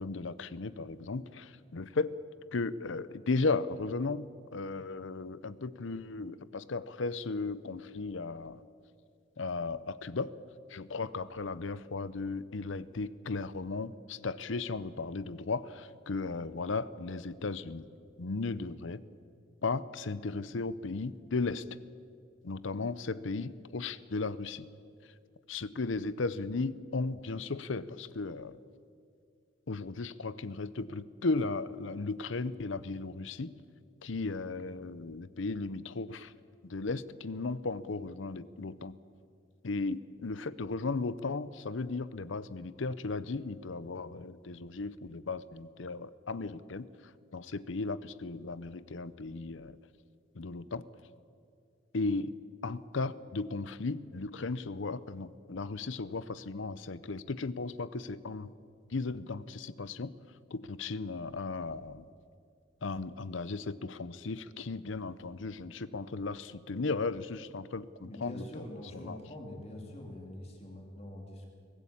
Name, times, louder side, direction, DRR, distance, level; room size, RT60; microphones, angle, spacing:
voice 1, 0.0-2.2 2.5-4.3 4.5-8.6 9.4-10.3 10.7-17.8 18.2-19.0 19.6-21.6 22.4-24.7 25.5-28.6 29.7-33.5 34.0-36.3 36.6-38.9 39.6-46.9 47.3-49.8 50.3-50.8 51.9-52.3 52.6-58.5 58.9-60.1 60.5-62.0 62.8-68.6 68.9-69.2, left 3 dB, 75° left, 16 dB, 0.7 m, -35 dB
voice 2, 68.0-71.5, left 1 dB, 30° left, 1 dB, 2.7 m, -44 dB
23.0 x 15.5 x 8.6 m, 2.3 s
head